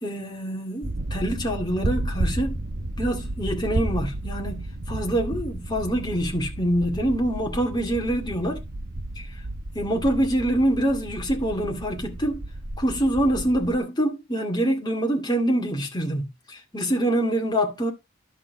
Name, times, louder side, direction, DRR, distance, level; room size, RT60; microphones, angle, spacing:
voice 1, 0.0-2.6 3.0-8.6 9.2-9.3 9.7-12.4 12.8-17.9, right 1 dB, 20° left, 2.2 m, -25 dB
sound 1, 0.8-13.8, right 1 dB, 50° right, 1.1 m, -32 dB
11.0 x 6.6 x 3.8 m
head